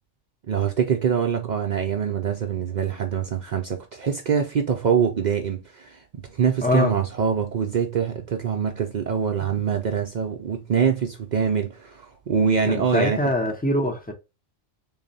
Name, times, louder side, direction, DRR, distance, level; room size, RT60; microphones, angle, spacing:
voice 1, 0.5-13.2, right 7 dB, 60° right, 0.4 m, -24 dB
voice 2, 6.6-6.9 12.7-14.1, left 1 dB, 15° left, 0.3 m, -23 dB
3.9 x 2.1 x 3.8 m
omnidirectional pair, 1.2 m